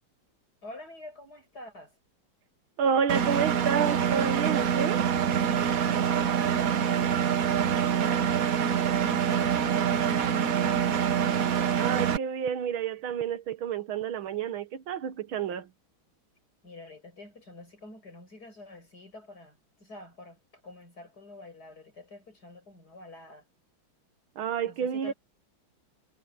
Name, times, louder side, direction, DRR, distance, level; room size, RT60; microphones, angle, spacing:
voice 1, 0.6-1.9 5.9-8.5 9.0-11.3 16.6-23.4 24.6-25.1, left 2 dB, 50° left, 7.3 m, -47 dB
voice 2, 2.8-5.0 11.8-15.7 24.4-25.1, right 7 dB, 80° right, 2.0 m, -29 dB
Engine, 3.1-12.2, right 8 dB, 50° right, 1.2 m, -25 dB
omnidirectional pair, 2.2 m